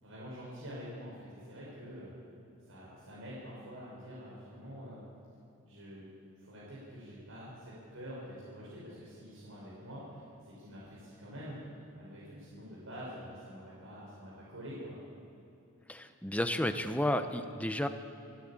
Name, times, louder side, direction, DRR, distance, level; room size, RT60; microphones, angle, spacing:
voice 1, 0.0-2.2 2.6-5.0 5.7-6.1 6.4-15.0, equal, 65° right, -7 dB, 5.8 m, -46 dB
voice 2, 15.9-17.9, left 1 dB, 5° left, 8 dB, 0.8 m, -32 dB
26.0 x 11.5 x 8.8 m, 2.6 s
head